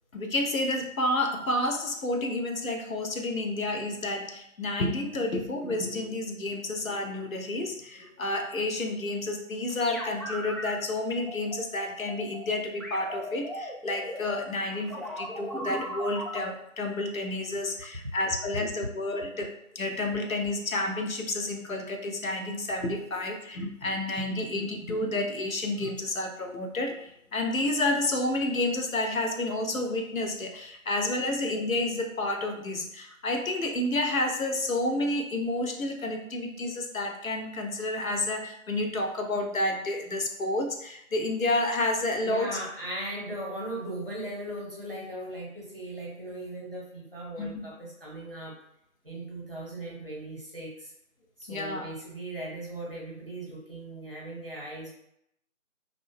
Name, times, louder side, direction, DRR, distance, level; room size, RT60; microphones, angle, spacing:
voice 1, 0.1-42.6 47.4-47.6 51.5-51.8, left 2 dB, 70° left, 3 dB, 0.7 m, -30 dB
sound 1, 9.7-10.7 11.3-12.4 12.8-16.4, equal, ahead, 0.3 m, -37 dB
voice 2, 42.2-48.5 49.0-50.9 51.4-54.9, right 1 dB, 40° right, -3 dB, 0.9 m, -38 dB
2.5 x 2.1 x 3.1 m, 0.76 s
figure-of-eight pair, 175°, 42 cm